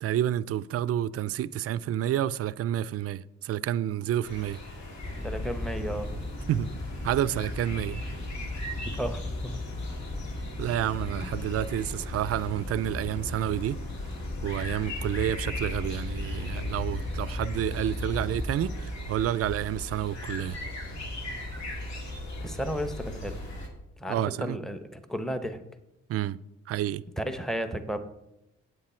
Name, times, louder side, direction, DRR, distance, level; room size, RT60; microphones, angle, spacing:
voice 1, 0.0-4.6 6.5-6.7 7.0-8.0 10.6-13.8 14.4-20.6 24.1-24.6 26.1-26.4 26.7-27.0, right 11 dB, 50° right, 0.4 m, -29 dB
sound 1, 4.2-23.7, left 1 dB, 65° left, 2.4 m, -40 dB
sound 2, 5.0-23.5, left 1 dB, 35° left, 2.4 m, -37 dB
voice 2, 5.2-6.2 9.0-9.6 22.4-23.4 24.0-25.6 27.2-28.0, equal, ahead, 0.9 m, -33 dB
9.7 x 8.2 x 4.4 m
cardioid pair, 90°, 30 cm